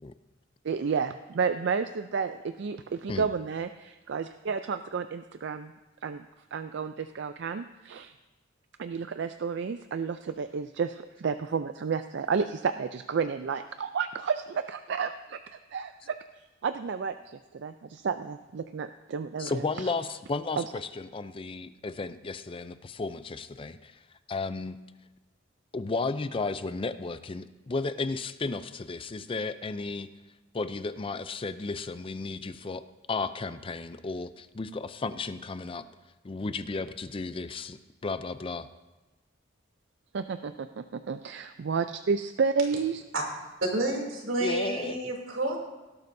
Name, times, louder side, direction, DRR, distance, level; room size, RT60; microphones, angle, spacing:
voice 1, 0.6-5.7 6.0-6.3 6.5-8.1 8.8-15.4 15.7-19.9 20.6-20.7 40.1-43.0, right 5 dB, 65° right, 10 dB, 0.4 m, -31 dB
voice 2, 19.4-23.9 24.3-24.8 25.7-30.1 30.5-35.8 36.2-38.7 44.4-45.0, left 3 dB, 30° left, 12 dB, 0.4 m, -34 dB
voice 3, 43.6-45.6, right 1 dB, 90° right, 0 dB, 2.9 m, -29 dB
18.0 x 12.0 x 2.7 m, 1.2 s
head